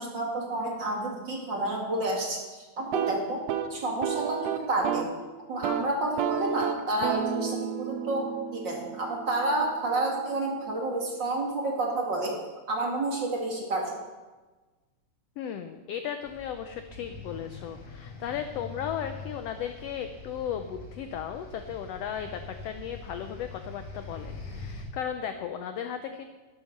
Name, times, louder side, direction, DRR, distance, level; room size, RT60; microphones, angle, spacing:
voice 1, 0.0-3.4 3.7-5.1 5.5-12.4 12.7-14.0, right 2 dB, 40° right, -1 dB, 2.2 m, -30 dB
sound 1, 2.8-5.2 5.5-5.9 6.2-10.0, right 8 dB, 75° right, 1.8 m, -32 dB
voice 2, 15.4-26.2, left 9 dB, 80° left, 7 dB, 1.4 m, -36 dB
sound 2, 16.2-24.8, left 3 dB, 55° left, 3.6 m, -43 dB
12.0 x 10.0 x 5.9 m, 1.3 s
omnidirectional pair, 3.6 m